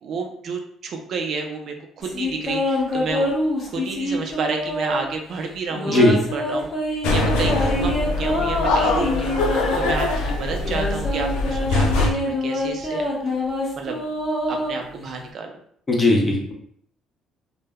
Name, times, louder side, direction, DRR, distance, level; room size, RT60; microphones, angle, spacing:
voice 1, 0.0-3.3 3.7-6.7 7.1-13.1 13.7-14.0 14.5-15.6, right 4 dB, 60° right, 3 dB, 0.4 m, -30 dB
sound 1, 2.0-5.1 5.7-9.9 10.5-15.2, left 1 dB, 40° left, 1.0 m, -25 dB
voice 2, 5.9-6.3 15.9-16.5, left 2 dB, 25° left, 0 dB, 0.7 m, -18 dB
sound 2, 7.0-12.1, left 2 dB, 90° left, 0.4 m, -23 dB
2.1 x 2.0 x 3.5 m, 0.64 s
cardioid pair, 95°, 0 cm